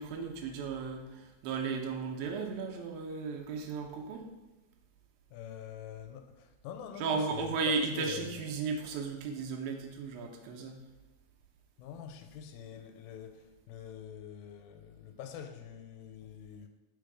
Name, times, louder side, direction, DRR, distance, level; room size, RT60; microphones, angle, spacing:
voice 1, 0.0-4.3 7.0-10.8, right 4 dB, 85° right, 2.5 m, -35 dB
voice 2, 5.3-8.4 11.8-16.7, left 8 dB, 90° left, 2.4 m, -45 dB
5.1 x 4.6 x 4.8 m
omnidirectional pair, 4.1 m